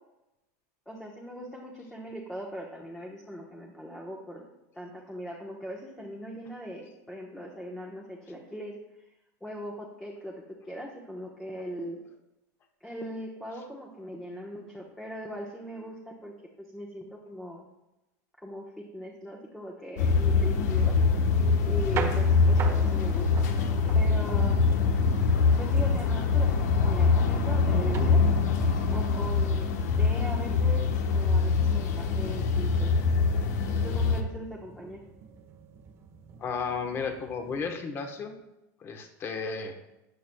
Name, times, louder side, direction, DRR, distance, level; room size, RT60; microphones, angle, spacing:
voice 1, 0.9-4.4 4.7-8.7 9.4-10.3 10.7-12.0 12.8-16.3 16.7-17.6 18.4-20.9 21.6-23.4 23.9-24.6 25.6-28.2 28.9-30.8 31.1-32.9 33.8-35.0, equal, 5° left, -2 dB, 1.1 m, -40 dB
sound 1, 20.0-34.2, left 4 dB, 80° left, 1.1 m, -24 dB
sound 2, 21.6-37.7, right 7 dB, 30° right, 1.0 m, -43 dB
voice 2, 36.4-38.3 38.8-39.7, left 5 dB, 25° left, 5 dB, 1.2 m, -33 dB
13.5 x 9.2 x 2.3 m, 0.94 s
supercardioid pair, 150°, 9 cm